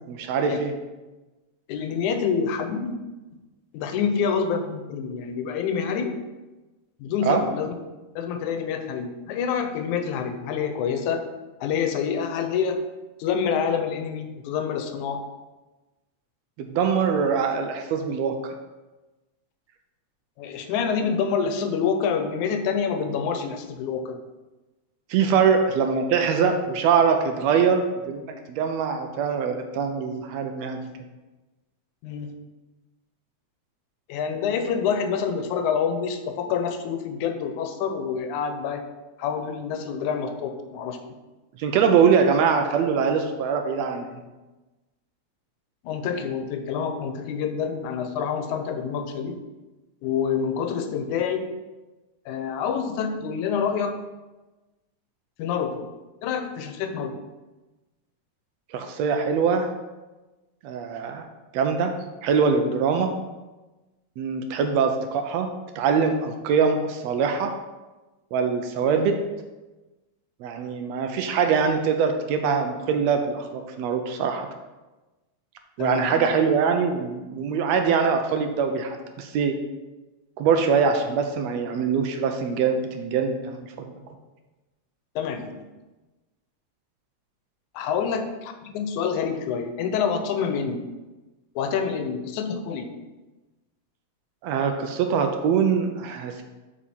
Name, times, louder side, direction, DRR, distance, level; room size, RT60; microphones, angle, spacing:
voice 1, 0.1-0.7 7.2-7.4 16.6-18.5 25.1-30.9 41.6-44.2 58.7-59.7 60.6-61.3 61.5-62.0 62.2-63.1 64.2-67.5 68.3-69.2 70.4-74.5 75.8-79.6 80.4-83.9 94.4-96.4, right 6 dB, 80° right, 6 dB, 1.6 m, -23 dB
voice 2, 1.7-3.0 3.7-6.2 7.0-7.7 8.2-11.3 11.6-12.8 13.2-15.2 20.4-24.2 25.4-25.5 32.0-32.3 34.1-38.8 39.2-41.0 41.8-41.9 45.8-49.4 50.0-51.5 52.3-54.0 55.4-55.8 56.2-57.1 75.8-76.2 85.2-85.7 87.7-90.8 91.6-92.9, left 6 dB, 85° left, 6 dB, 2.1 m, -27 dB
7.3 x 5.0 x 4.2 m, 1.1 s
omnidirectional pair, 3.4 m